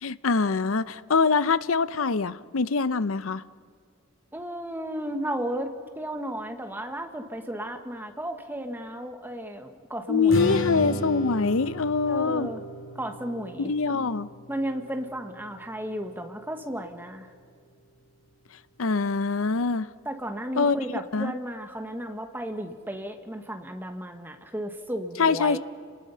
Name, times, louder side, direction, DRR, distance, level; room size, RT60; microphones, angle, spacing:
voice 1, 0.0-3.4 10.1-12.5 13.6-14.3 18.8-19.9 20.6-20.8 21.1-21.3 25.2-25.6, left 4 dB, 85° left, 15 dB, 0.7 m, -24 dB
voice 2, 4.3-10.6 12.1-12.6 12.9-13.7 14.5-17.3 20.0-25.6, right 1 dB, 10° right, 5 dB, 1.3 m, -34 dB
Strum, 10.3-16.6, equal, 65° left, 3.0 m, -35 dB
30.0 x 20.0 x 5.7 m, 2.1 s
head